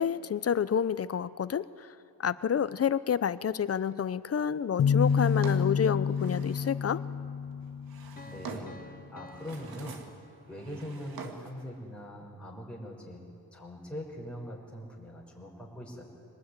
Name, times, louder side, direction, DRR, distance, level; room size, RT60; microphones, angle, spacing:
voice 1, 0.0-1.9 2.2-7.0, left 8 dB, 40° left, 15 dB, 0.8 m, -29 dB
sound 1, 4.8-8.5, left 6 dB, 60° left, 1.4 m, -28 dB
Drawer open or close, 5.0-6.8 7.6-8.9 9.3-10.2 10.5-11.6, right 5 dB, 70° right, 2.2 m, -46 dB
Piano, 8.2-10.9, left 2 dB, 25° left, 1.8 m, -52 dB
voice 2, 8.3-10.0 10.5-13.2 13.5-16.0, equal, 5° left, -3 dB, 5.7 m, -42 dB
25.0 x 19.5 x 9.8 m, 2.4 s
cardioid pair, 110°, 37 cm